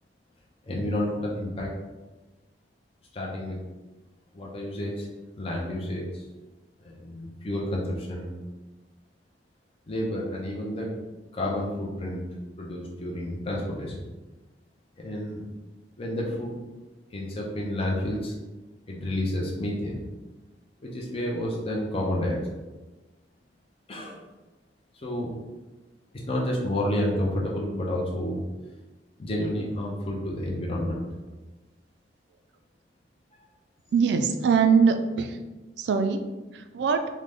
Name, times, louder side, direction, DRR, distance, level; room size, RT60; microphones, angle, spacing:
voice 1, 0.7-1.7 3.1-3.6 4.3-5.1 5.4-6.2 6.8-8.3 9.9-10.9 11.3-12.2 12.6-14.0 15.0-15.4 16.0-16.5 17.1-18.3 18.9-20.0 20.8-22.6 23.9-24.2 25.0-25.3 26.1-28.4 29.2-31.0, left 1 dB, 30° left, -3 dB, 0.5 m, -30 dB
voice 2, 33.9-35.4 35.8-36.2 36.5-37.0, right 5 dB, 70° right, 7 dB, 0.3 m, -22 dB
3.7 x 2.1 x 3.4 m, 1.2 s
head